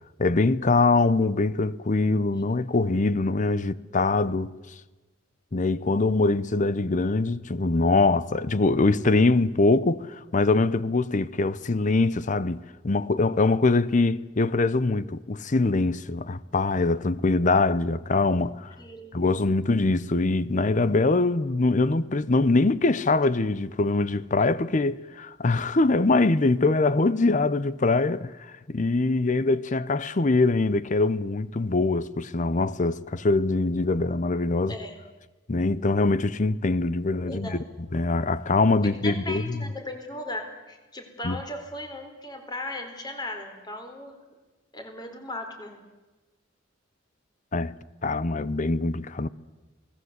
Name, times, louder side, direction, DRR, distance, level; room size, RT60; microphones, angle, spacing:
voice 1, 0.2-4.5 5.5-18.7 19.1-34.8 35.5-37.6 37.9-39.6 41.2-41.4 47.5-47.7 48.0-49.3, left 3 dB, 40° left, 0.7 m, -23 dB
voice 2, 18.8-19.4 34.7-34.9 37.2-37.6 38.8-44.2 44.7-45.8, left 1 dB, 25° left, 4.0 m, -37 dB
28.0 x 19.0 x 8.1 m
head